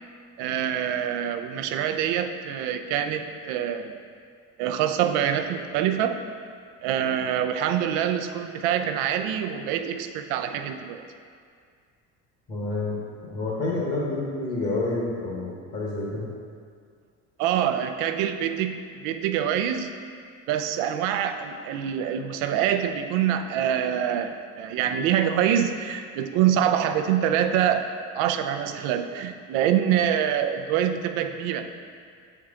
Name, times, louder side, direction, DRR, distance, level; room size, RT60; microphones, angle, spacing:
voice 1, 0.4-4.0 4.6-6.2 6.8-11.0 17.4-19.9 20.5-27.9 28.1-31.7, right 9 dB, 90° right, 8 dB, 0.5 m, -25 dB
voice 2, 12.5-16.3, left 2 dB, 35° left, -6 dB, 1.3 m, -29 dB
7.5 x 4.6 x 3.7 m, 2.1 s
cardioid pair, 125°, 31 cm